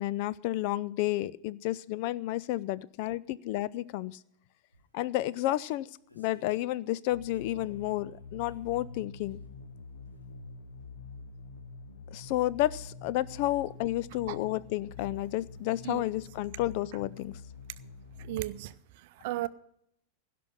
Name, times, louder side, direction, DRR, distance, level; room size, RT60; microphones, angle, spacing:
voice 1, 0.0-4.2 4.9-5.9 6.2-9.4 12.1-17.4, left 15 dB, 45° left, 0.4 m, -31 dB
sound 1, 4.7-4.8 5.6-6.7 7.3-9.5 9.9-10.4 10.7-10.8, right 1 dB, 85° left, 2.9 m, -57 dB
sound 2, 7.1-18.6, left 4 dB, 60° left, 1.2 m, -47 dB
voice 2, 18.2-19.5, right 15 dB, 50° right, 0.6 m, -35 dB
16.5 x 6.0 x 9.8 m
figure-of-eight pair, 90°, 0 cm